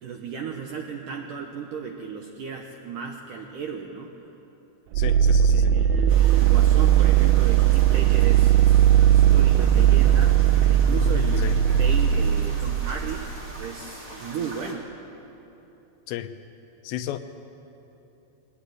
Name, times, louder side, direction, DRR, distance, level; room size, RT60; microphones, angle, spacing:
voice 1, 0.0-4.1 5.4-10.4 10.7-13.3 13.6-14.9, right 6 dB, 70° right, 2 dB, 2.0 m, -35 dB
sound 1, 4.9-13.6, right 10 dB, 85° right, 3.1 m, -18 dB
voice 2, 5.0-5.7 11.4-11.5 16.1-16.3 16.8-17.2, left 12 dB, 80° left, 10 dB, 2.9 m, -33 dB
sound 2, 6.1-14.7, right 1 dB, 20° right, 2.7 m, -42 dB
22.5 x 18.5 x 9.1 m, 3.0 s
omnidirectional pair, 5.2 m